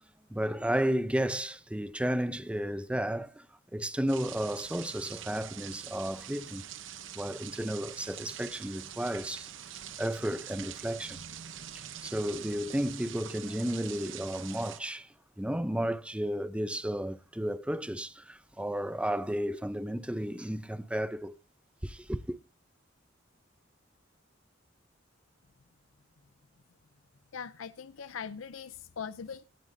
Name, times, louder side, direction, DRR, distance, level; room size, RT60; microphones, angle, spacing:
voice 1, 0.3-3.5 3.7-6.6 7.1-11.2 11.7-21.4 21.8-22.4, equal, 5° right, 0.5 m, -33 dB
sound 1, 4.1-14.8, right 10 dB, 65° right, 0.9 m, -44 dB
voice 2, 27.3-29.4, left 6 dB, 85° left, 0.5 m, -41 dB
17.0 x 8.9 x 2.7 m
head